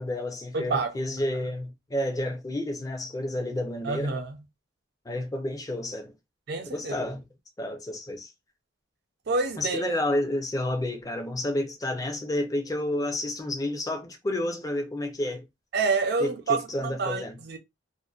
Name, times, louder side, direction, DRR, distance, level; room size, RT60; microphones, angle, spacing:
voice 1, 0.0-4.2 5.1-6.1 6.7-7.2 7.6-8.3 9.6-15.5 16.2-17.4, left 1 dB, 20° left, 0.5 m, -30 dB
voice 2, 0.5-0.9 3.8-4.4 6.5-7.2 9.3-9.9 15.7-17.6, right 4 dB, 55° right, 0.5 m, -28 dB
2.5 x 2.1 x 2.3 m
head